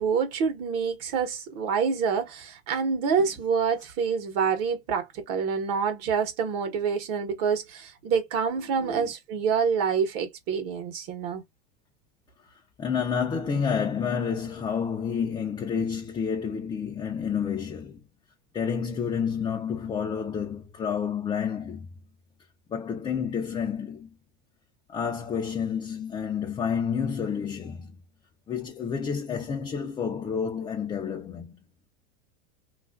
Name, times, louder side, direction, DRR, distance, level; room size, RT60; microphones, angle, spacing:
voice 1, 0.0-11.4, right 6 dB, 45° right, 1.0 m, -27 dB
voice 2, 12.5-18.0 18.5-21.9 22.7-24.2 24.9-28.0 28.5-31.5, left 7 dB, 15° left, 0.4 m, -29 dB
3.1 x 2.4 x 2.3 m
supercardioid pair, 130°, 33 cm